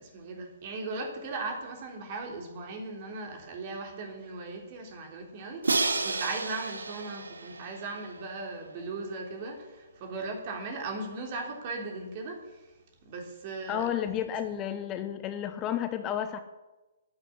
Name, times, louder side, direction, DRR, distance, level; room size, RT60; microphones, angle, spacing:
voice 1, 0.0-12.4 13.0-13.9, right 3 dB, 35° right, 2 dB, 3.5 m, -38 dB
Crash cymbal, 5.6-8.6, right 3 dB, 70° right, 1.4 m, -31 dB
voice 2, 13.7-16.4, left 10 dB, 20° left, 9 dB, 0.9 m, -31 dB
11.5 x 9.9 x 9.9 m, 1.1 s
figure-of-eight pair, 125°, 0 cm